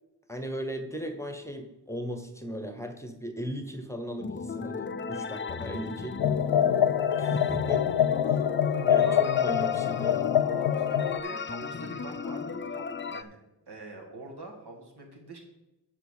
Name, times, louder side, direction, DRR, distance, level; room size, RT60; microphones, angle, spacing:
voice 1, 0.3-6.2 7.2-7.9 8.2-8.5 8.9-10.3, equal, 5° left, 6 dB, 1.0 m, -37 dB
sound 1, 4.2-13.2, left 5 dB, 30° left, 0.4 m, -36 dB
sound 2, 6.2-11.2, left 9 dB, 85° left, 0.5 m, -25 dB
voice 2, 8.8-9.2 10.6-13.4 13.7-15.4, right 2 dB, 70° right, 1 dB, 2.2 m, -43 dB
8.3 x 5.7 x 6.5 m, 0.98 s
wide cardioid pair, 125°, 41 cm